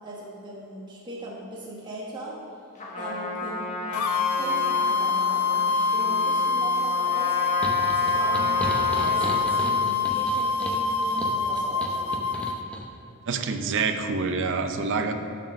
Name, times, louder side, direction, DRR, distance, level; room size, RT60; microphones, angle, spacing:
voice 1, 0.0-2.4 3.0-7.4 7.9-12.2, right 1 dB, 20° right, -6 dB, 1.2 m, -39 dB
Trumpet, 2.7-9.6, left 2 dB, 35° left, 1.2 m, -34 dB
sound 1, 3.9-12.6, left 4 dB, 70° left, 0.5 m, -25 dB
sound 2, 7.6-12.9, left 1 dB, 5° left, 0.7 m, -35 dB
voice 2, 13.3-15.1, right 4 dB, 60° right, 7 dB, 0.6 m, -26 dB
9.2 x 4.4 x 6.3 m, 2.8 s
head